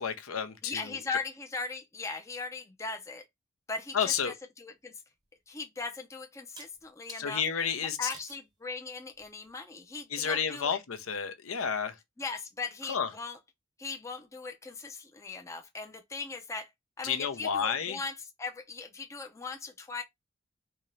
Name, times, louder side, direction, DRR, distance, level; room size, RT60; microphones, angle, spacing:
voice 1, 0.0-1.0 3.9-4.3 7.2-8.1 10.1-12.0 12.9-13.1 17.0-18.0, left 7 dB, 80° left, 0.6 m, -31 dB
voice 2, 0.6-3.2 3.7-4.9 5.5-7.4 8.0-10.8 12.2-13.4 13.8-16.7 17.0-20.0, left 4 dB, 15° left, 0.4 m, -39 dB
sound 1, 5.2-5.3 6.6-7.2 8.1-8.5 9.1-9.5, right 3 dB, 20° right, 0.7 m, -49 dB
3.5 x 2.7 x 3.2 m
head